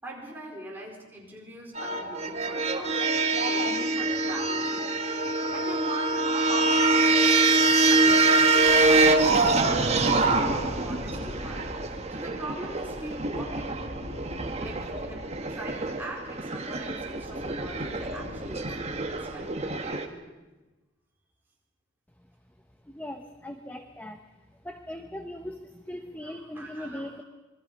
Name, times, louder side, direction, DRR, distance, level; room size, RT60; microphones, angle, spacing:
voice 1, 0.0-7.2 7.9-13.8 14.6-20.0 26.2-27.2, right 1 dB, 10° right, -3 dB, 4.7 m, -42 dB
sound 1, 1.8-20.1, right 3 dB, 30° right, 1.5 m, -25 dB
sound 2, 8.6-19.8, left 1 dB, 65° left, 3.0 m, -42 dB
voice 2, 22.9-24.2 24.6-27.2, left 1 dB, 10° left, 5 dB, 0.9 m, -39 dB
26.5 x 23.0 x 5.5 m, 1.2 s
head